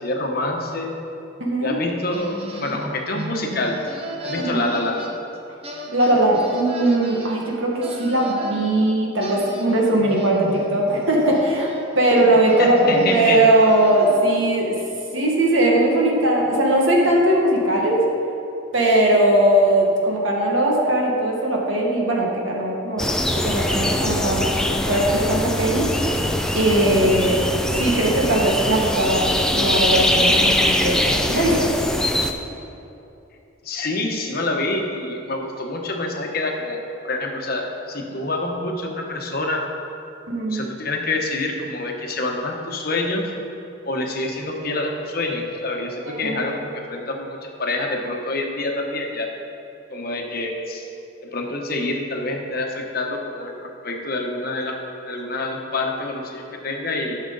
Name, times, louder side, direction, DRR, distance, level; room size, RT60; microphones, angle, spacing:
voice 1, 0.0-0.9 1.6-3.8 4.2-5.0 12.6-13.4 33.6-39.6 40.5-43.3 43.8-49.3 49.9-50.9 51.2-54.8 55.0-57.2, left 2 dB, 50° left, 1 dB, 1.0 m, -26 dB
voice 2, 1.4-1.7 4.3-4.7 5.9-11.7 11.9-14.7 15.1-18.0 18.7-23.1 23.4-25.8 26.5-27.4 27.7-31.7 40.3-40.7 46.0-46.4, right 1 dB, 80° right, -2 dB, 1.7 m, -19 dB
sound 1, 2.1-5.4 5.6-8.7 9.2-14.5, right 1 dB, 30° right, 0.8 m, -35 dB
sound 2, 23.0-32.3, left 1 dB, 5° left, 0.4 m, -22 dB
12.0 x 6.4 x 4.0 m, 2.8 s
head